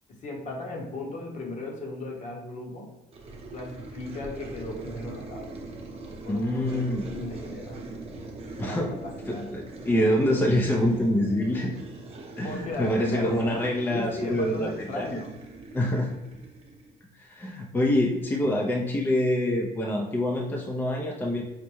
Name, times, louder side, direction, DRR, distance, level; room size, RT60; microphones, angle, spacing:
voice 1, 0.2-2.9 3.5-5.5 6.2-7.9 8.6-9.5 12.4-13.4 13.9-15.4, left 2 dB, 45° left, 0 dB, 1.0 m, -36 dB
sound 1, 3.1-17.0, right 2 dB, 35° right, 0.9 m, -41 dB
voice 2, 6.3-7.1 8.6-8.9 9.3-11.7 12.4-15.1 15.7-16.1 17.2-21.4, left 1 dB, 10° left, 0 dB, 0.4 m, -26 dB
5.1 x 2.2 x 3.0 m, 1.0 s
cardioid pair, 110°, 17 cm